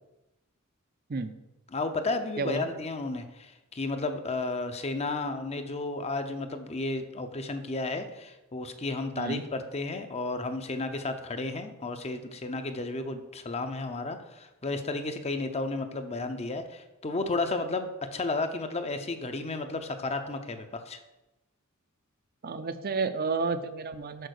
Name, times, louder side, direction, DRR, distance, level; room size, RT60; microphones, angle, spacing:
voice 1, 1.7-21.0, left 3 dB, 30° left, 8 dB, 0.6 m, -33 dB
voice 2, 2.4-2.7 9.1-9.4 22.4-24.3, right 4 dB, 45° right, 11 dB, 0.6 m, -31 dB
6.5 x 5.1 x 6.5 m, 0.99 s
head